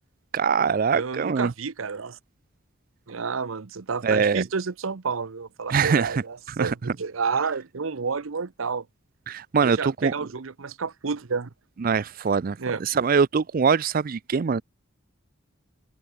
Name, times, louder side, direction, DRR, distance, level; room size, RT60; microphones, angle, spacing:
voice 1, 0.3-1.5 4.0-4.4 5.7-6.2 6.6-6.7 9.3-10.1 11.8-14.6, right 5 dB, 45° right, 0.4 m, -23 dB
voice 2, 0.9-2.2 3.1-8.9 9.6-11.5 12.6-12.8, right 5 dB, 80° right, 0.8 m, -30 dB
open air
head